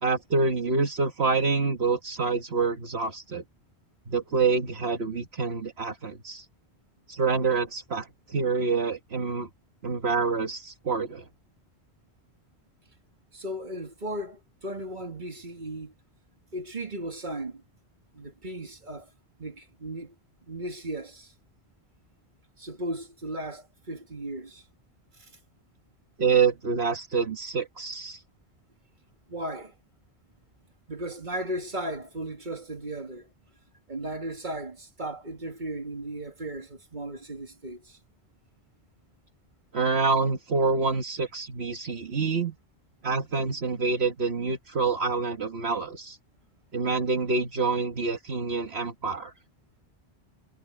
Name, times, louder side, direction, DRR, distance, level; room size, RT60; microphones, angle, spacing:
voice 1, 0.0-3.4 4.1-6.5 7.1-9.5 9.8-11.3 26.2-28.2 39.7-42.5 43.0-46.2 46.7-49.3, right 4 dB, 65° right, 1.8 m, -27 dB
voice 2, 13.3-15.9 16.5-17.6 18.1-19.1 19.4-20.1 20.5-21.3 22.6-24.6 29.3-29.7 30.9-33.3 33.9-38.0, right 1 dB, 45° right, 2.5 m, -36 dB
omnidirectional pair, 1.2 m